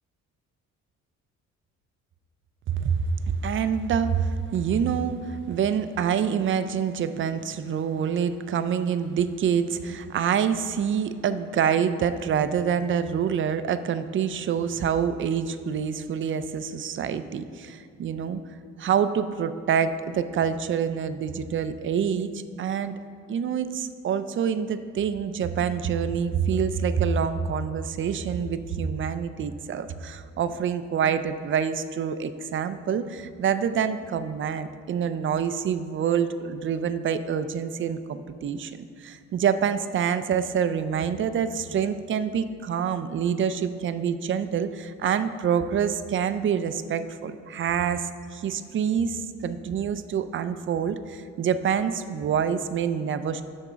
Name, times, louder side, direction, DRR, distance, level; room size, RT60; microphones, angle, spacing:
voice 1, 2.7-18.4 18.8-23.0 23.3-53.4, right 7 dB, 40° right, 12 dB, 0.4 m, -26 dB
6.8 x 3.6 x 6.1 m, 2.3 s
cardioid pair, 90°, 30 cm